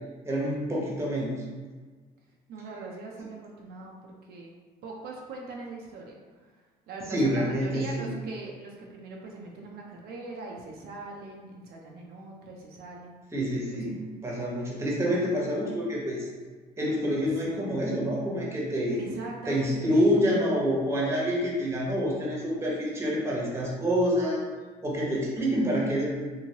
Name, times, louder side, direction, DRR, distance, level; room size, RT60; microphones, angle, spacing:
voice 1, 0.3-1.3 7.1-8.1 13.3-16.3 16.8-19.0 19.5-24.4 24.8-26.1, equal, 15° right, -4 dB, 0.9 m, -27 dB
voice 2, 2.5-4.5 4.8-13.2 13.8-14.0 17.3-17.4 18.9-20.1, right 3 dB, 70° right, -1 dB, 0.5 m, -41 dB
3.0 x 2.7 x 2.7 m, 1.4 s
cardioid pair, 110°, 17 cm